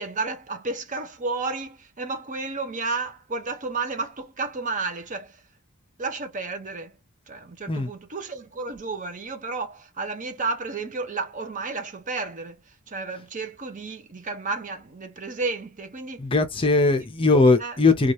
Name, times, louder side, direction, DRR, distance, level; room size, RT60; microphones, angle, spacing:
voice 1, 0.0-5.4 6.0-7.0 7.3-16.2 17.6-17.8, right 3 dB, 35° right, 0.7 m, -32 dB
voice 2, 16.2-18.1, left 3 dB, 25° left, 0.5 m, -19 dB
2.7 x 2.3 x 3.1 m
head